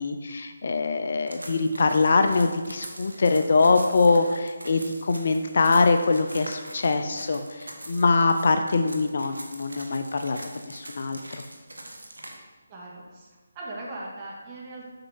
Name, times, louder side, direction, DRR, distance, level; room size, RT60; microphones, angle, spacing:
voice 1, 0.0-10.4 10.7-11.4, left 3 dB, 55° left, 7 dB, 0.6 m, -23 dB
sound 1, 1.3-12.3, right 1 dB, 90° right, 1.3 m, -43 dB
voice 2, 12.7-13.3 13.6-14.9, right 2 dB, 25° right, -4 dB, 1.9 m, -39 dB
7.8 x 5.6 x 4.5 m, 1.3 s
figure-of-eight pair, 155°, 0 cm